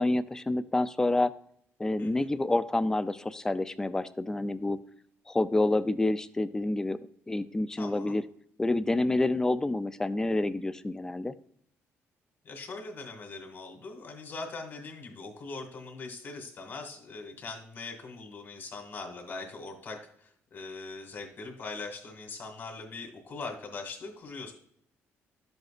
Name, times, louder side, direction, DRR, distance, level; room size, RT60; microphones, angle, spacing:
voice 1, 0.0-1.3 1.8-4.8 5.3-7.0 7.3-8.2 8.6-11.3, left 2 dB, 10° left, 14 dB, 0.4 m, -28 dB
voice 2, 7.8-8.2 12.4-24.5, left 3 dB, 45° left, 3 dB, 1.9 m, -41 dB
12.0 x 7.9 x 2.5 m, 0.66 s
cardioid pair, 130°, 5 cm